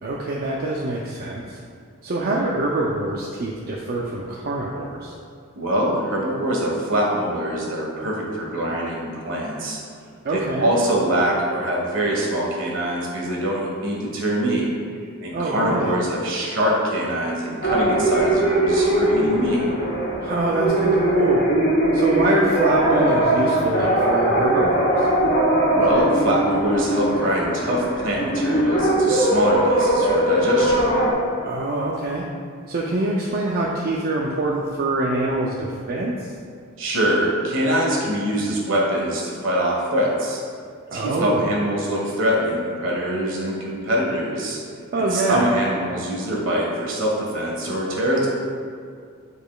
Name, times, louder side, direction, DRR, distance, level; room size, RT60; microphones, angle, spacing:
voice 1, 0.0-1.6 2.0-5.1 10.2-10.7 15.3-15.9 20.2-21.4 21.9-25.1 31.4-32.2 32.7-36.3 40.9-41.5 44.9-45.5, right 2 dB, 45° right, -3 dB, 0.5 m, -24 dB
voice 2, 5.5-9.8 10.3-14.6 15.2-19.6 25.7-31.0 36.8-40.4 40.9-44.6 45.0-48.3, equal, 65° right, -3 dB, 1.5 m, -23 dB
sound 1, 17.6-31.1, right 1 dB, 55° left, 1.3 m, -20 dB
8.8 x 4.8 x 2.4 m, 2.2 s
head